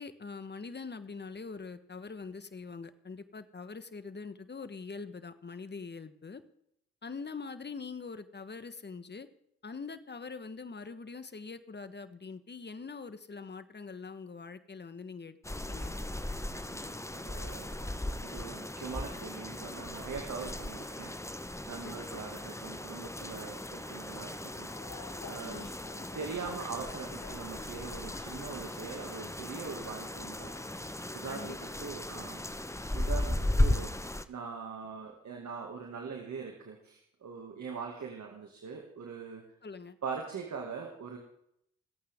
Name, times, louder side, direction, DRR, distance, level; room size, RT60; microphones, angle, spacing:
voice 1, 0.0-6.4 7.0-9.3 9.6-15.4 15.7-16.0 21.8-22.1 25.4-25.7 31.3-31.6 39.6-40.0, left 4 dB, 35° left, 12 dB, 1.4 m, -43 dB
sound 1, 15.4-34.3, left 1 dB, 10° left, 1.0 m, -36 dB
voice 2, 16.7-25.6 26.1-30.5 30.8-32.4 32.9-33.9 34.3-39.4 40.0-41.2, right 5 dB, 70° right, 1 dB, 2.3 m, -42 dB
sound 2, 24.4-30.7, left 6 dB, 70° left, 1.6 m, -52 dB
25.5 x 8.7 x 3.7 m, 0.73 s
supercardioid pair, 50°, 30 cm